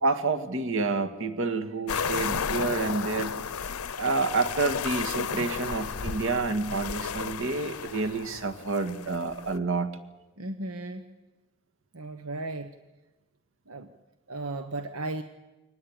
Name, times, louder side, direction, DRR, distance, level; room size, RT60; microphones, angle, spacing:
voice 1, 0.0-3.4 4.0-9.9, right 3 dB, 65° right, 6 dB, 2.0 m, -28 dB
sound 1, 1.9-9.6, left 6 dB, 85° left, 0.8 m, -33 dB
voice 2, 10.4-11.1 11.9-12.7 13.7-13.9 14.3-15.2, right 2 dB, 90° right, 9 dB, 1.2 m, -35 dB
24.0 x 19.5 x 9.0 m, 1.1 s
head